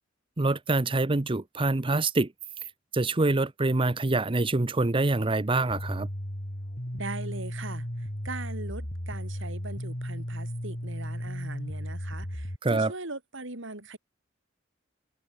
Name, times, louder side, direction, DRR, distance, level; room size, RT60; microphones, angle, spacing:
voice 1, 0.4-2.3 2.9-6.1 12.6-12.9, right 2 dB, 25° right, 0.8 m, -25 dB
sound 1, 5.7-12.6, equal, 40° left, 4.8 m, -35 dB
voice 2, 6.9-14.0, right 2 dB, 65° right, 4.1 m, -40 dB
head